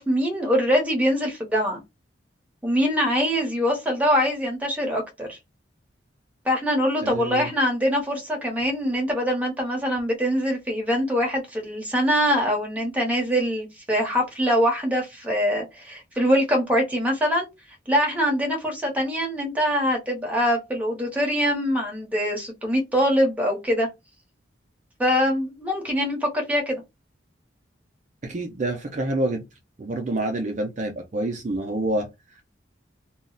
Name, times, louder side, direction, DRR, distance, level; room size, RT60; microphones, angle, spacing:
voice 1, 0.0-1.8 2.6-5.4 6.4-17.5 17.9-23.9 25.0-26.8, equal, 10° right, 0.8 m, -23 dB
voice 2, 7.0-7.5 28.2-29.4 29.8-32.1 32.3-32.6, right 2 dB, 40° right, 0.4 m, -27 dB
2.3 x 2.0 x 3.7 m
head